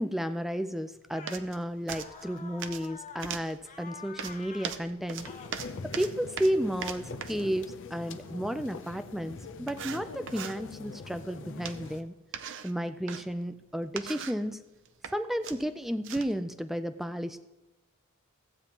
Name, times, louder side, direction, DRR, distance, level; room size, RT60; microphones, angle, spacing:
voice 1, 0.0-5.3 5.8-12.1 12.6-14.6 15.1-17.4, equal, ahead, 10 dB, 0.3 m, -32 dB
sound 1, 1.1-1.5 1.9-3.4 3.7-4.8 5.2-5.5, left 5 dB, 35° left, 0.8 m, -47 dB
sound 2, 1.3-1.6 1.9-2.9 3.2-3.6 4.2-7.5 9.0-9.1 9.7-10.6 11.7-12.0 12.3-13.2 13.8-14.4 14.9-15.2 15.4-16.4, right 7 dB, 60° right, 0.6 m, -40 dB
sound 3, 5.2-12.0, left 3 dB, 60° left, 0.6 m, -44 dB
15.0 x 8.8 x 2.9 m, 1.1 s
head